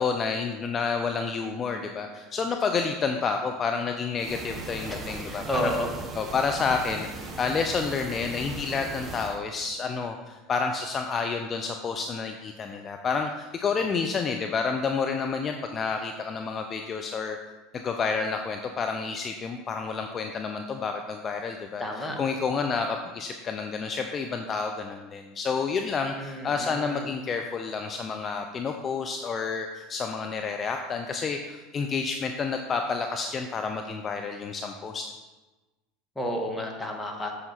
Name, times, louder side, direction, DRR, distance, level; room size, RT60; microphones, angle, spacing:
voice 1, 0.0-5.7 6.1-17.4 17.7-35.1, left 5 dB, 30° left, 4 dB, 0.6 m, -29 dB
sound 1, 4.2-9.4, right 3 dB, 25° right, 1.0 m, -38 dB
voice 2, 4.9-5.9 21.8-22.2 26.2-27.1 36.2-37.3, equal, 5° left, 0 dB, 1.7 m, -31 dB
8.1 x 7.1 x 4.2 m, 1.2 s
hypercardioid pair, 75°, 0 cm